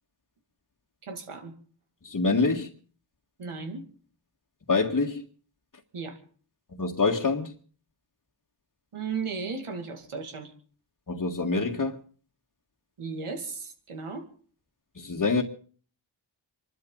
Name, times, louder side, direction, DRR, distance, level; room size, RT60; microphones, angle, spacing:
voice 1, 1.0-1.5 3.4-3.9 5.9-6.2 8.9-10.5 13.0-14.3, right 4 dB, 90° right, 2.5 m, -35 dB
voice 2, 2.0-2.7 4.7-5.2 6.8-7.5 11.1-12.0 15.0-15.4, left 4 dB, 40° left, 1.9 m, -25 dB
27.5 x 12.5 x 3.9 m
wide cardioid pair, 70°, 49 cm